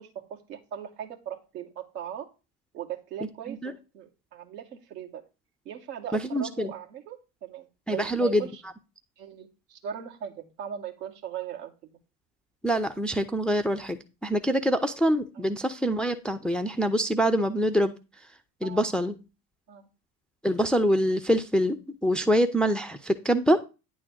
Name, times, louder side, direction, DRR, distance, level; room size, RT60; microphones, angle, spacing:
voice 1, 0.0-2.3 2.7-5.2 5.7-8.6 9.2-11.9 15.3-15.5 18.6-18.9 19.7-19.9 23.5-23.6, right 9 dB, 70° right, 2 dB, 2.1 m, -39 dB
voice 2, 6.1-6.7 7.9-8.5 12.6-17.9 18.6-19.2 20.4-21.8 22.0-23.6, equal, ahead, 8 dB, 0.7 m, -25 dB
9.7 x 3.9 x 6.2 m, 0.30 s
figure-of-eight pair, 70°, 50 cm